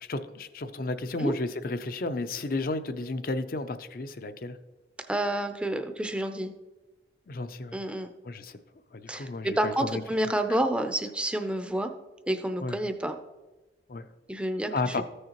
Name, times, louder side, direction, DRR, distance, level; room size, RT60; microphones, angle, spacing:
voice 1, 0.0-4.6 7.3-7.8 8.2-8.6 8.9-10.0 10.5-10.6 12.6-12.8 13.9-14.1 14.7-15.0, left 2 dB, 50° left, 11 dB, 0.5 m, -33 dB
voice 2, 5.1-6.5 7.7-8.1 9.1-11.9 12.3-13.2 14.3-15.0, right 1 dB, 5° right, 6 dB, 0.5 m, -29 dB
14.5 x 6.4 x 3.0 m, 1.2 s
head